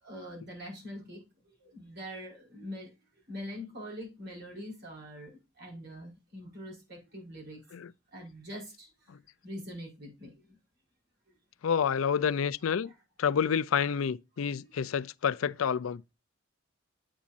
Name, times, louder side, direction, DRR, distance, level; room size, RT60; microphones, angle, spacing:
voice 1, 0.0-2.9 3.3-7.6 8.1-8.9 9.4-10.6 12.8-12.9, equal, 55° right, 4.8 m, -44 dB
voice 2, 11.6-12.9 13.2-16.0, left 7 dB, 80° left, 0.4 m, -28 dB
8.6 x 8.3 x 2.5 m
head